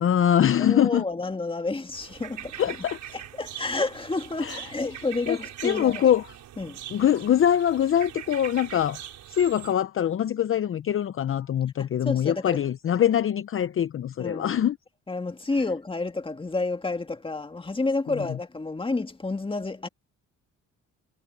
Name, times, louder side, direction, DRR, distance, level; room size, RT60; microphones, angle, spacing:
voice 1, 0.0-1.0 2.6-3.0 4.4-4.9 5.3-5.4 5.6-6.2 6.9-9.0 9.3-14.8 18.1-18.2, left 10 dB, 45° left, 0.7 m, -23 dB
voice 2, 0.6-2.7 3.4-6.1 6.6-6.8 11.8-12.6 14.2-14.6 15.1-19.9, left 3 dB, 15° left, 1.9 m, -30 dB
sound 1, 1.9-9.7, right 11 dB, 75° right, 6.0 m, -42 dB
cardioid pair, 90°, 30 cm